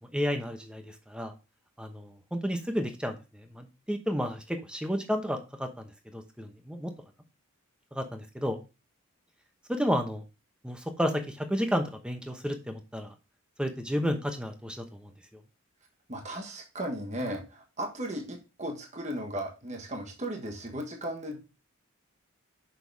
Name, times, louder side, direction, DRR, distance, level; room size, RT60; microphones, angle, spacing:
voice 1, 0.1-1.3 1.8-6.9 7.9-8.6 9.7-10.2 10.6-13.1 13.6-15.1, equal, 5° right, 5 dB, 0.9 m, -32 dB
voice 2, 16.1-21.4, right 1 dB, 30° right, 2 dB, 1.3 m, -36 dB
6.4 x 5.6 x 3.4 m, 0.29 s
head